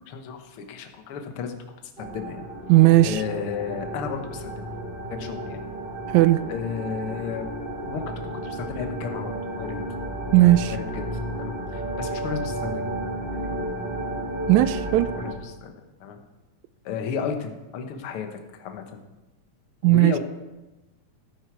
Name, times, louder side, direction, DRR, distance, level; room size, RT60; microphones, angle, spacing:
voice 1, 0.1-2.4 3.0-4.7 5.1-5.6 6.5-7.5 7.8-9.8 10.7-12.9 13.3-13.6 15.2-15.7 16.0-16.2 16.9-19.0 19.8-20.2, left 6 dB, 55° left, 1.7 m, -33 dB
sound 1, 2.0-15.3, right 1 dB, 20° right, 1.6 m, -32 dB
voice 2, 2.7-3.2 6.1-6.4 10.3-10.8 14.5-15.1 19.8-20.1, right 16 dB, 80° right, 1.8 m, -17 dB
13.5 x 10.0 x 4.7 m
omnidirectional pair, 3.4 m